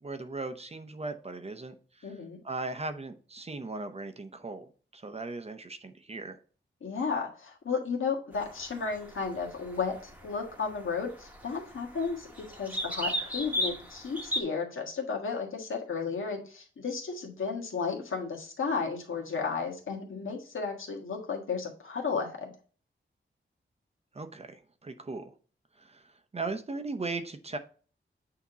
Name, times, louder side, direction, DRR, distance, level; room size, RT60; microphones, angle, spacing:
voice 1, 0.0-2.1 2.4-6.4 24.1-25.3 25.8-27.6, right 3 dB, 30° right, 8 dB, 0.6 m, -38 dB
voice 2, 2.0-2.4 6.8-22.5, left 5 dB, 80° left, 0 dB, 1.5 m, -33 dB
sound 1, 8.3-14.4, equal, 10° right, 1.0 m, -37 dB
8.4 x 2.9 x 3.9 m, 0.40 s
wide cardioid pair, 125°, 20 cm